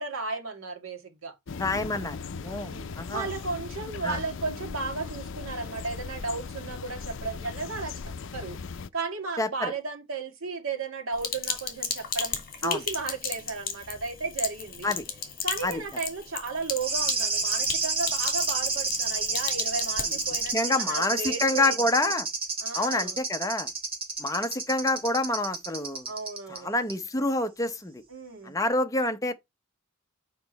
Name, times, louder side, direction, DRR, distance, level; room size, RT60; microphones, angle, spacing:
voice 1, 0.0-1.4 2.4-7.9 8.3-8.6 8.9-14.9 15.4-21.8 22.6-23.2 26.1-26.7 28.1-28.5, right 4 dB, 70° right, 1.9 m, -34 dB
sound 1, 1.5-8.9, left 5 dB, 60° left, 0.5 m, -38 dB
voice 2, 1.6-3.3 4.0-4.2 9.4-9.7 12.6-12.8 14.8-15.0 15.6-15.8 20.5-22.3 22.7-23.7 24.2-26.1 26.5-28.0 28.4-29.3, left 2 dB, 15° left, 0.7 m, -27 dB
Sink (filling or washing), 11.2-20.5, left 7 dB, 45° left, 1.9 m, -35 dB
sound 2, 16.8-26.6 26.9-27.0, right 4 dB, 25° right, 2.2 m, -30 dB
6.9 x 5.3 x 4.0 m
head